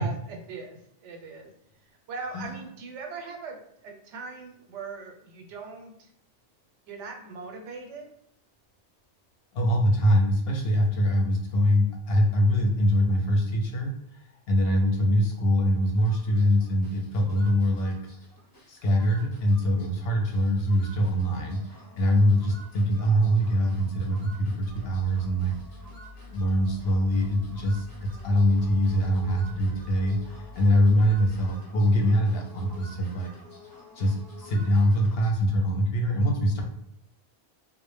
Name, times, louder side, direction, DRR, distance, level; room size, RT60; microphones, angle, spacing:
voice 1, 0.0-1.5 1.8-6.1 6.8-8.1, right 4 dB, 85° right, 2 dB, 0.9 m, -40 dB
voice 2, 9.5-18.0 18.7-25.5 26.3-33.3 33.9-36.6, equal, 65° left, 1 dB, 0.7 m, -23 dB
sound 1, 15.9-35.6, left 1 dB, 25° left, 0.5 m, -51 dB
sound 2, 24.6-31.6, left 3 dB, 60° right, 0.5 m, -47 dB
2.1 x 2.0 x 3.1 m, 0.78 s
omnidirectional pair, 1.2 m